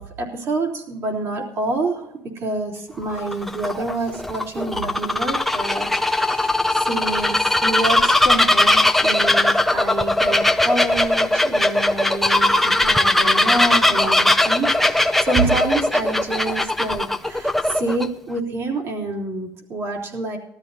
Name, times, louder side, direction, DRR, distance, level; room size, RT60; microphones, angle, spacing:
voice 1, 0.0-20.4, right 2 dB, 40° right, 1 dB, 3.4 m, -27 dB
Bird vocalization bird call bird song, 3.0-18.1, left 1 dB, 5° left, 0.6 m, -19 dB
19.5 x 13.0 x 2.8 m, 0.80 s
cardioid pair, 150°, 7 cm